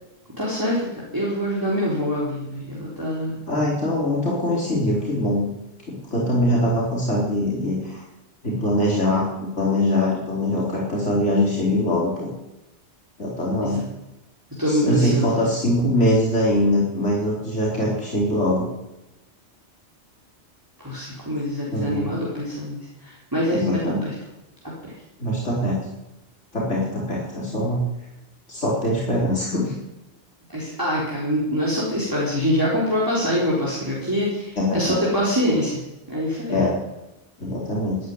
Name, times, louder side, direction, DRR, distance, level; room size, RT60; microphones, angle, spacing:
voice 1, 0.4-0.9 1.1-3.4 13.6-13.8 14.6-15.3 20.8-24.1 24.8-24.9 30.5-35.7 36.1-36.6, equal, 15° right, -7 dB, 4.0 m, -24 dB
voice 2, 3.5-5.5 5.9-8.0 8.4-12.3 13.2-13.8 14.7-18.7 21.7-22.1 23.5-24.0 25.2-25.8 26.5-27.8 28.5-29.7 34.6-35.0 36.4-36.7 37.4-38.0, left 1 dB, 85° left, -5 dB, 4.7 m, -22 dB
14.5 x 10.5 x 9.6 m, 0.96 s
omnidirectional pair, 1.2 m